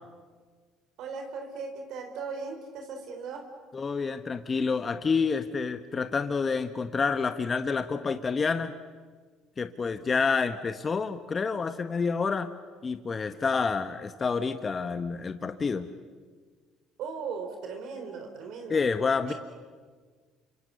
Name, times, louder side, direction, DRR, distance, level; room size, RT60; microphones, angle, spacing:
voice 1, 1.0-3.5 17.0-18.9 19.3-19.4, right 5 dB, 65° right, 4 dB, 3.9 m, -38 dB
voice 2, 3.7-8.7 9.6-12.5 12.8-15.9 18.7-19.3, left 5 dB, 35° left, 9 dB, 1.3 m, -28 dB
29.5 x 26.0 x 6.9 m, 1.5 s
hypercardioid pair, 65°, 0 cm